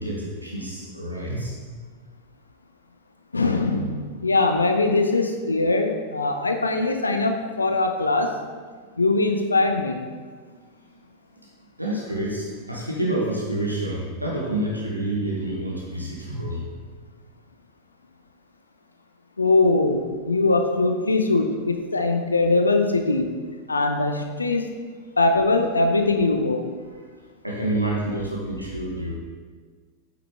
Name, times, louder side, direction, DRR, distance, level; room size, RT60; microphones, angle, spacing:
voice 1, 0.0-1.6 11.8-16.6 27.4-29.1, right 1 dB, 85° right, -3 dB, 1.1 m, -28 dB
voice 2, 3.3-8.3 9.0-10.1 19.4-23.3 23.7-24.6 25.2-26.6, left 2 dB, 80° left, 5 dB, 0.5 m, -21 dB
8.2 x 5.8 x 3.4 m, 1.6 s
figure-of-eight pair, 90°, 0 cm